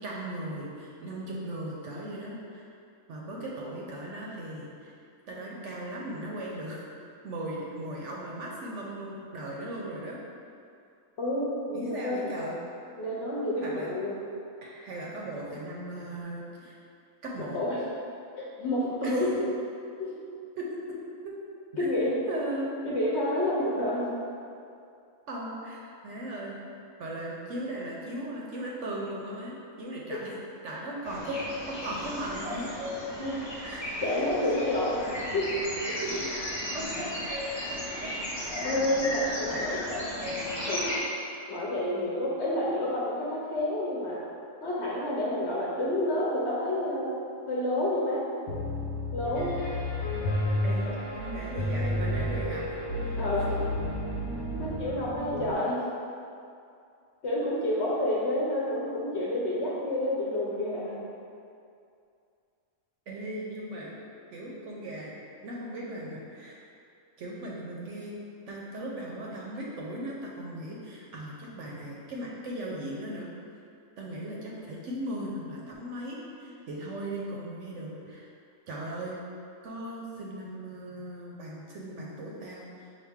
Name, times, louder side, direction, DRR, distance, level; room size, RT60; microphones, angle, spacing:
voice 1, 0.0-2.6 3.1-4.9 5.3-6.9 7.2-10.2 11.7-12.6 13.6-13.9 14.6-16.8 17.2-17.6 19.0-19.4 20.6-20.7 22.3-22.7 25.3-26.6 27.0-30.2 30.6-31.4 31.7-32.7 33.6-34.1 34.4-34.5 35.9-36.3 36.7-37.1 38.0-38.1 39.4-39.7 50.6-52.7 53.0-53.2 53.5-53.6 54.5-54.6 63.1-63.9 64.3-65.1 65.4-66.6 67.2-68.1 68.5-73.3 74.0-78.3 78.7-79.2 79.6-82.9, right 1 dB, 65° right, -3 dB, 0.9 m, -37 dB
voice 2, 11.2-12.3 13.0-14.2 17.4-17.8 18.4-19.3 20.0-20.2 21.8-22.2 22.8-24.1 33.2-33.4 34.0-35.1 35.3-35.5 38.6-39.8 40.7-40.9 41.5-44.2 44.6-47.1 47.5-48.3 49.1-49.5 50.8-51.0 53.2-53.5 54.6-55.8 57.2-61.0, left 1 dB, 55° left, -5 dB, 0.9 m, -29 dB
sound 1, 31.0-41.0, left 1 dB, 25° left, 0.7 m, -34 dB
Piano, 48.5-55.5, left 1 dB, 90° left, 1.3 m, -31 dB
5.8 x 2.5 x 3.5 m, 2.5 s
omnidirectional pair, 1.5 m